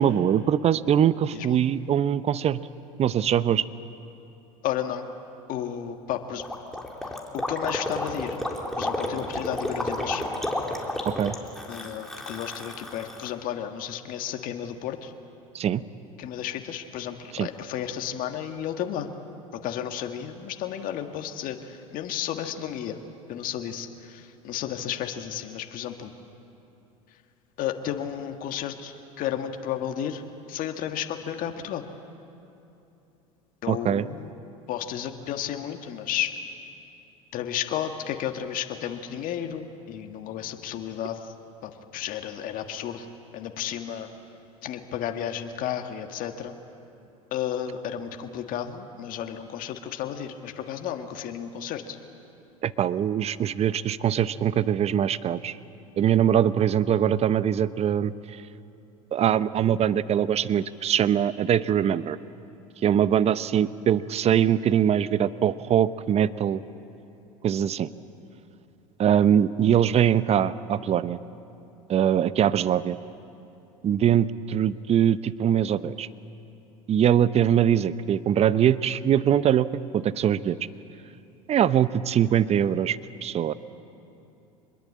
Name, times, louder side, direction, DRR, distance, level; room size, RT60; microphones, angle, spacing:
voice 1, 0.0-2.6 3.0-3.6 11.1-11.4 15.5-15.8 17.3-17.5 33.7-34.0 52.6-55.6 56.0-58.4 59.1-62.2 62.8-66.6 67.4-67.9 69.0-71.2 71.9-73.0 73.8-76.1 76.9-79.7 79.9-80.6 81.5-83.5, right 9 dB, 35° right, 16 dB, 0.8 m, -22 dB
voice 2, 4.6-5.1 5.5-6.4 7.3-8.4 8.8-10.3 11.7-15.1 16.2-19.1 19.5-23.0 23.3-26.1 27.6-30.2 30.5-31.8 33.6-34.3 34.7-36.3 37.3-41.3 41.6-43.1 43.3-44.1 44.6-46.6 47.3-52.0, left 10 dB, 55° left, 6 dB, 1.7 m, -32 dB
Gurgling, 6.4-13.3, left 1 dB, ahead, 3.4 m, -31 dB
25.5 x 21.5 x 8.5 m, 2.9 s
hypercardioid pair, 85°, 18 cm